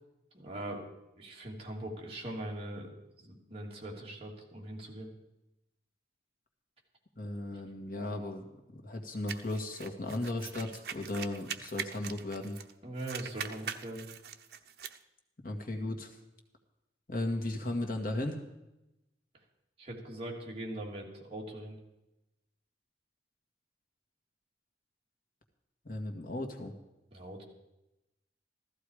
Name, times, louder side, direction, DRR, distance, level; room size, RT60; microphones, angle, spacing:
voice 1, 0.3-0.8 1.2-5.1 12.8-14.1 19.8-21.8 27.1-27.4, right 1 dB, 35° right, -2 dB, 3.2 m, -41 dB
voice 2, 7.2-12.6 15.4-16.1 17.1-18.4 25.9-26.7, left 1 dB, 50° left, 4 dB, 2.0 m, -36 dB
sound 1, 9.3-12.7 13.0-15.0, right 7 dB, 65° right, 0.9 m, -42 dB
15.5 x 14.5 x 5.0 m, 0.94 s
head